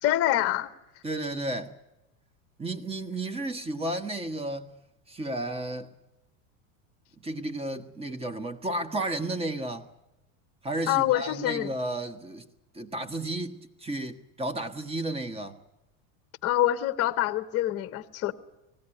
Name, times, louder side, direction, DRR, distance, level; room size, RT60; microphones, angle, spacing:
voice 1, 0.0-0.7 10.9-11.7 16.4-18.3, left 14 dB, 35° left, 1.0 m, -25 dB
voice 2, 1.0-1.8 2.6-4.8 5.1-5.9 7.2-9.9 10.6-12.5 12.7-15.6, right 2 dB, 15° right, 1.4 m, -33 dB
19.5 x 16.5 x 9.9 m
supercardioid pair, 140°, 41 cm